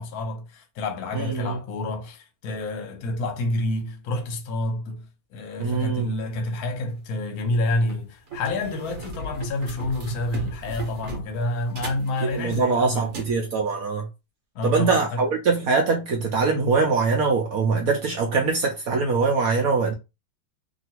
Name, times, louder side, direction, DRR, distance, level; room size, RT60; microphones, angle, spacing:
voice 1, 0.0-13.2 14.5-15.2, left 2 dB, 60° left, 1.1 m, -29 dB
voice 2, 1.1-1.6 5.6-6.1 12.2-14.1 14.6-19.9, right 4 dB, 70° right, 0.8 m, -23 dB
sound 1, 6.7-6.9 7.5-7.6 7.9-13.4, right 1 dB, 50° right, 1.1 m, -36 dB
2.9 x 2.7 x 2.8 m
omnidirectional pair, 2.2 m